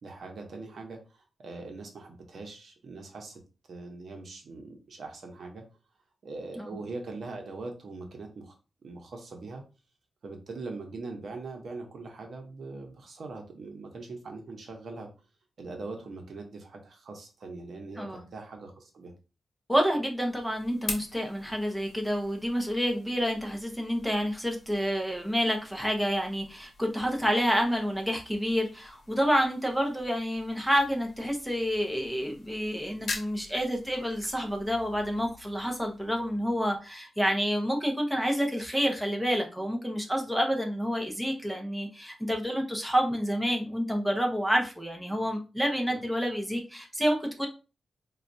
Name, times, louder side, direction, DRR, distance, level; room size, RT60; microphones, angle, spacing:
voice 1, 0.0-3.4 3.7-5.6 6.2-8.5 8.8-9.6 10.2-15.1 15.6-19.1, right 3 dB, 65° right, 3 dB, 0.8 m, -41 dB
voice 2, 19.7-47.5, equal, ahead, 2 dB, 0.7 m, -28 dB
sound 1, 20.0-37.0, left 3 dB, 65° left, 0.8 m, -46 dB
4.2 x 2.3 x 2.6 m, 0.32 s
wide cardioid pair, 100°, 0 cm